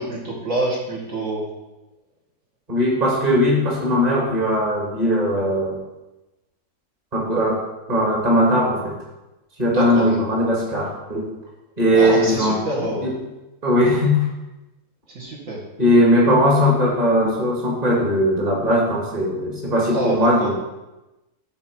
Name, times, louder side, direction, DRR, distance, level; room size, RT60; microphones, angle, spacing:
voice 1, 0.0-1.5 9.7-10.1 11.9-13.1 15.1-15.6 19.9-20.5, right 1 dB, 60° right, -4 dB, 2.1 m, -26 dB
voice 2, 2.7-5.8 7.1-7.6 7.9-8.9 9.6-11.3 11.8-13.2 13.6-14.3 15.8-20.5, equal, 25° right, -3 dB, 1.9 m, -19 dB
8.6 x 4.3 x 6.0 m, 1.0 s
omnidirectional pair, 1.6 m